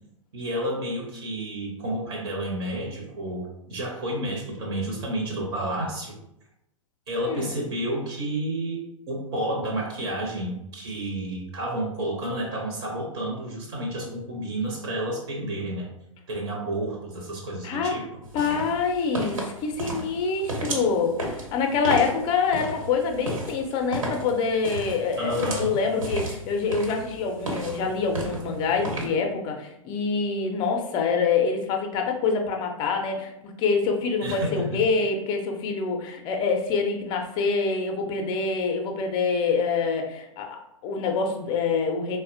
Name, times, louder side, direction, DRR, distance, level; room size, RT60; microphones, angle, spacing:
voice 1, 0.3-6.2 7.1-15.9 16.3-18.1 25.2-25.8 34.2-34.8, right 1 dB, 45° right, -1 dB, 0.8 m, -30 dB
voice 2, 7.3-7.6 17.6-18.0 18.3-42.2, left 5 dB, 25° left, 3 dB, 0.5 m, -26 dB
sound 1, 18.2-29.1, right 2 dB, 70° right, 1.2 m, -34 dB
4.1 x 2.1 x 2.5 m, 0.82 s
figure-of-eight pair, 105°, 17 cm